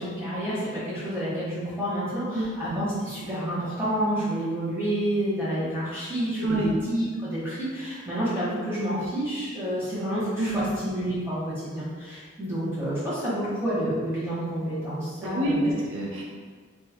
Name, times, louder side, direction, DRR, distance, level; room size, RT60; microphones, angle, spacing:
voice 1, 0.0-15.8, right 1 dB, 10° right, -11 dB, 1.1 m, -29 dB
voice 2, 6.4-6.7 10.4-10.7 15.2-16.2, right 1 dB, 75° right, -4 dB, 0.6 m, -27 dB
3.0 x 2.2 x 3.4 m, 1.5 s
head